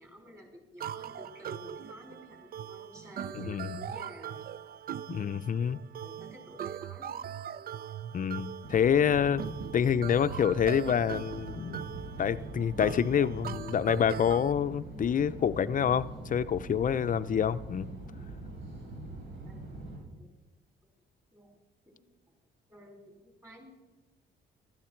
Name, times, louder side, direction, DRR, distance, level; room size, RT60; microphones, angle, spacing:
voice 1, 0.0-4.4 6.0-7.2 19.3-19.5 20.0-20.3 21.3-21.5 21.8-22.0 22.7-23.0 23.4-23.7, left 1 dB, 15° right, 1 dB, 5.0 m, -51 dB
sound 1, 0.8-14.5, right 9 dB, 50° right, 0.4 m, -41 dB
voice 2, 3.3-3.8 5.1-5.8 8.1-11.8 12.2-17.9, left 8 dB, 40° left, 14 dB, 0.6 m, -27 dB
sound 2, 8.6-20.0, right 2 dB, 75° right, 4.5 m, -43 dB
16.0 x 13.0 x 4.5 m, 1.1 s
cardioid pair, 90°, 20 cm